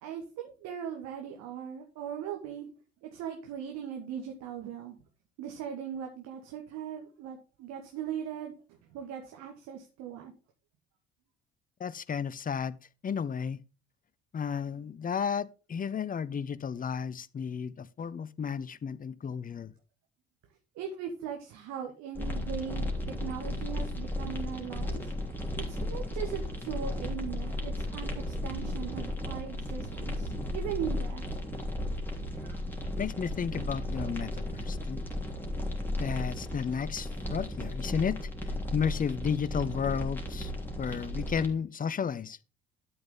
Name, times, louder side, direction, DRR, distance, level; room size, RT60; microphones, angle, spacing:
voice 1, 0.0-2.7 3.0-5.0 5.4-8.5 8.9-10.3 20.8-25.1 25.6-31.5 32.4-32.6, right 8 dB, 60° right, 2.0 m, -39 dB
voice 2, 11.8-12.8 13.0-13.6 14.3-19.7 33.0-35.0 36.0-40.5 40.8-42.4, left 7 dB, 25° left, 0.8 m, -33 dB
sound 1, 22.2-41.5, left 1 dB, 5° left, 3.4 m, -35 dB
12.0 x 5.9 x 3.8 m
figure-of-eight pair, 50°, 31 cm